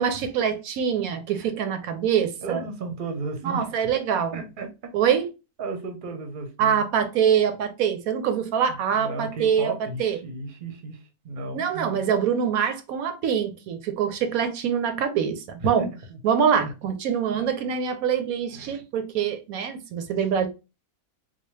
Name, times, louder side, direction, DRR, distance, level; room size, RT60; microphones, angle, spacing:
voice 1, 0.0-2.6 3.4-4.4 4.9-5.2 6.6-9.7 10.0-10.2 11.5-15.9 16.2-20.5, right 8 dB, 70° right, 1.0 m, -24 dB
voice 2, 2.4-3.9 4.3-4.9 5.6-6.8 8.9-12.1 15.6-16.2 17.3-17.5, right 3 dB, 45° right, 0.7 m, -34 dB
4.0 x 2.2 x 3.1 m
omnidirectional pair, 1.6 m